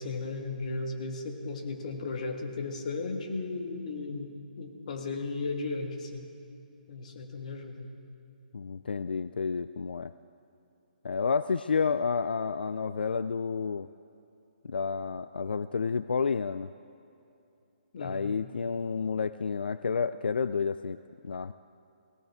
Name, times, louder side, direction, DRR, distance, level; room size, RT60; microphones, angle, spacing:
voice 1, 0.0-6.3 6.9-7.9 17.9-18.3, left 3 dB, 50° left, 4 dB, 1.7 m, -35 dB
voice 2, 8.5-10.1 11.0-13.9 14.6-16.7 18.0-21.0 21.2-21.5, left 5 dB, 90° left, 13 dB, 0.3 m, -30 dB
18.0 x 17.5 x 3.6 m, 2.6 s
hypercardioid pair, 160°, 5 cm